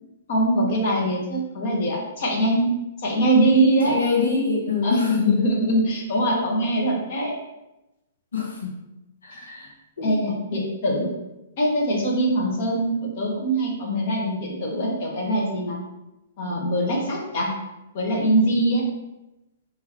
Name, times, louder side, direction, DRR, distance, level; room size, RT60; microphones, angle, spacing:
voice 1, 0.3-2.7 3.0-4.0 4.8-7.3 10.0-11.1 11.6-15.8 16.4-17.5 17.9-18.8, right 1 dB, 55° left, -2 dB, 1.4 m, -22 dB
voice 2, 3.8-5.4 8.3-8.7 9.2-9.7 10.0-10.1, left 5 dB, 80° left, -2 dB, 1.2 m, -24 dB
3.7 x 2.9 x 4.4 m, 0.95 s
hypercardioid pair, 120°, 0 cm